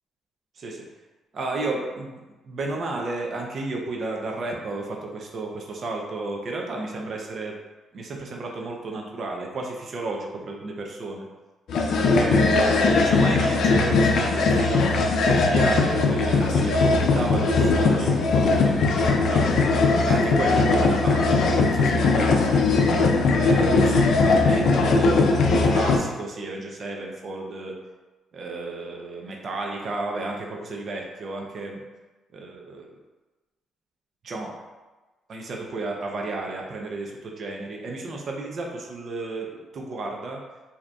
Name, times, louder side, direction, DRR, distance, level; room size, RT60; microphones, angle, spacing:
voice 1, 1.3-7.6 7.9-11.3 12.0-14.8 15.3-19.5 20.0-22.6 23.3-25.4 25.6-27.8 28.3-31.8 32.3-32.6 34.2-34.5 35.3-40.4, right 2 dB, 55° right, 0 dB, 0.5 m, -32 dB
sound 1, 11.7-26.0, left 3 dB, 70° left, 0.4 m, -20 dB
4.9 x 2.8 x 2.3 m, 1.2 s
cardioid pair, 90°, 0 cm